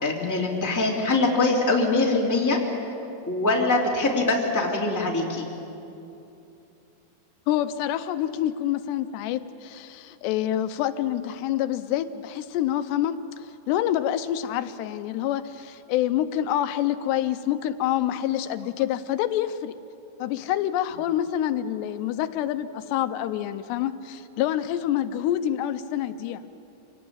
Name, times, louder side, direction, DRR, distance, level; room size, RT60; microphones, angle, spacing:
voice 1, 0.0-2.6 3.3-5.5, left 2 dB, 5° left, -2 dB, 1.9 m, -23 dB
voice 2, 7.5-19.8 20.2-26.4, left 11 dB, 85° left, 11 dB, 2.8 m, -27 dB
26.0 x 18.0 x 8.7 m, 2.8 s
omnidirectional pair, 4.9 m